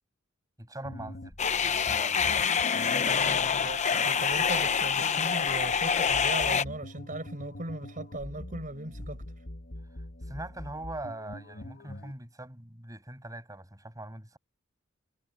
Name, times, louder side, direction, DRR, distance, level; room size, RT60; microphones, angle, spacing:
voice 1, 0.6-1.4 1.6-2.2 2.7-3.7 10.3-14.4, right 1 dB, 15° right, 7.8 m, -42 dB
sound 1, 0.9-12.1, left 1 dB, 50° left, 1.5 m, -44 dB
sound 2, 1.4-6.6, left 6 dB, 35° left, 0.8 m, -26 dB
voice 2, 3.6-9.2, right 1 dB, 40° right, 5.3 m, -38 dB
head